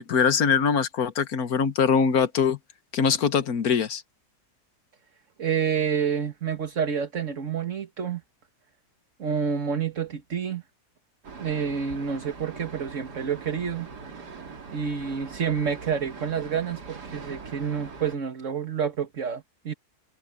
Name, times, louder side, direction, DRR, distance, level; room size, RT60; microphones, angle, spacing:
voice 1, 0.0-2.6 2.9-4.0, left 6 dB, 65° left, 1.6 m, -22 dB
voice 2, 5.4-8.2 9.2-10.6 11.4-13.9 14.7-19.7, right 7 dB, 50° right, 1.9 m, -28 dB
sound 1, 11.2-18.2, right 5 dB, 90° right, 2.9 m, -42 dB
omnidirectional pair, 1.7 m